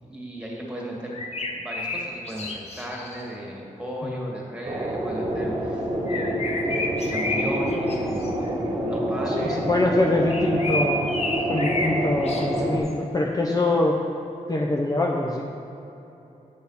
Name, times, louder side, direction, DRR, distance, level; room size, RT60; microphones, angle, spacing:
voice 1, 0.0-8.3 8.6-9.7, right 1 dB, 5° right, -3 dB, 1.9 m, -36 dB
sound 1, 1.1-3.3 6.1-8.0 8.2-8.5 10.3-12.0 12.2-12.9, left 2 dB, 50° left, 1.0 m, -30 dB
sound 2, 4.7-12.8, equal, 35° right, 1.3 m, -27 dB
voice 2, 9.3-11.1 11.5-14.0 14.5-15.4, left 2 dB, 25° left, -1 dB, 0.6 m, -24 dB
8.2 x 6.5 x 5.6 m, 3.0 s
wide cardioid pair, 115°, 14 cm